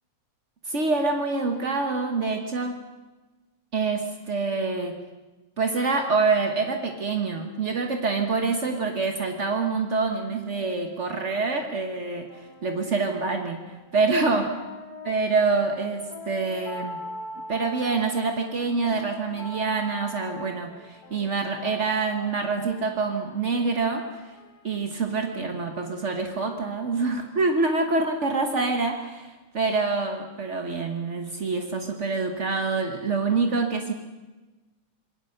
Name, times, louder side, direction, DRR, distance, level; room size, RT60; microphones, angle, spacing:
voice 1, 0.7-2.7 3.7-4.9 5.6-12.3 12.6-13.6 13.9-14.6 15.0-17.0 17.5-24.3 24.6-33.9, right 4 dB, 60° right, 4 dB, 0.7 m, -26 dB
sound 1, 9.6-27.0, left 1 dB, 60° left, 4.1 m, -43 dB
26.5 x 21.0 x 6.6 m, 1.2 s
omnidirectional pair, 3.4 m